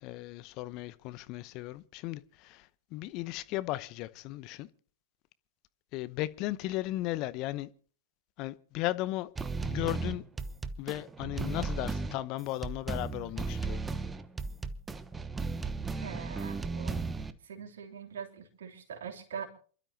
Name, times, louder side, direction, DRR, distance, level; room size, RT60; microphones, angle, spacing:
voice 1, 0.0-4.7 5.9-7.7 8.4-9.3 9.6-10.2 10.8-13.8, left 17 dB, 45° left, 0.8 m, -36 dB
sound 1, 9.4-17.3, right 4 dB, 15° right, 1.1 m, -35 dB
voice 2, 16.0-17.1 17.4-19.5, right 7 dB, 70° right, 3.1 m, -43 dB
28.0 x 12.5 x 2.8 m
hypercardioid pair, 100°, 0 cm